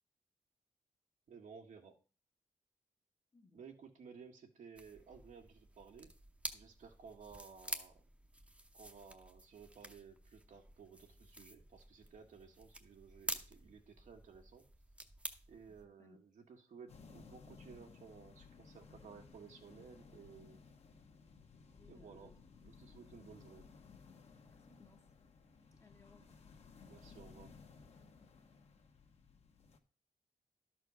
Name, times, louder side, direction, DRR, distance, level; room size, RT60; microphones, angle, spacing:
voice 1, 1.3-1.9 3.5-6.1 6.5-8.0 8.7-14.7 15.5-20.6 21.9-22.3 22.6-23.7 26.9-27.5, right 6 dB, 90° right, 1.9 m, -56 dB
sound 1, 4.7-15.9, right 1 dB, 10° right, 0.8 m, -49 dB
voice 2, 15.7-16.2 21.8-22.4 24.5-25.0 25.7-26.3, left 4 dB, 25° left, 0.9 m, -65 dB
sound 2, 16.9-29.8, left 5 dB, 55° left, 1.2 m, -59 dB
12.0 x 4.4 x 6.3 m
wide cardioid pair, 160°, 13 cm